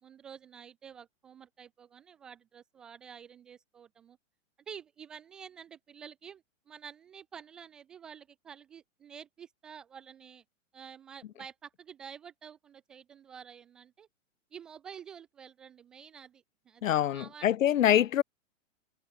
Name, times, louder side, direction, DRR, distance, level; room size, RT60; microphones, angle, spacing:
voice 1, 0.0-4.2 4.7-10.4 10.7-14.1 14.5-17.5, right 7 dB, ahead, 0.4 m, -49 dB
voice 2, 16.8-18.2, left 11 dB, 85° left, 1.1 m, -25 dB
hypercardioid pair, 165°, 38 cm